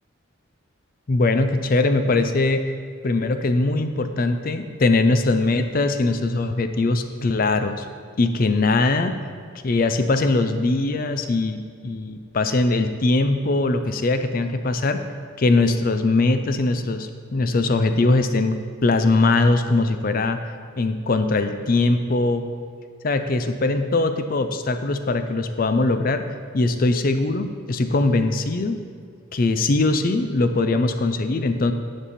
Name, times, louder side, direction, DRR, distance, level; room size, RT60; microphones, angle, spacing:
voice 1, 1.1-2.6 3.0-7.8 8.2-9.1 9.6-15.0 15.4-20.4 20.8-22.4 23.0-26.2 26.5-28.8 29.3-31.7, left 2 dB, 40° left, 9 dB, 0.4 m, -21 dB
10.0 x 5.4 x 4.2 m, 2.1 s
head